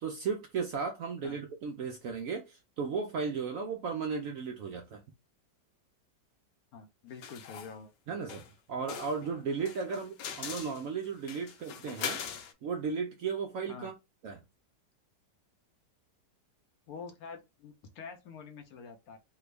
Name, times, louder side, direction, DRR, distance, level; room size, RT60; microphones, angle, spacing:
voice 1, 0.0-5.0 8.1-8.4 8.7-12.2 12.6-13.9 14.2-14.4, right 5 dB, 70° right, 0.8 m, -35 dB
voice 2, 6.7-7.9 9.9-10.0 13.7-13.9 16.9-19.2, left 5 dB, 70° left, 1.0 m, -46 dB
sound 1, 7.2-7.7 8.3-8.5 8.9-12.5, left 7 dB, 90° left, 1.3 m, -41 dB
3.4 x 2.2 x 3.2 m
omnidirectional pair, 1.9 m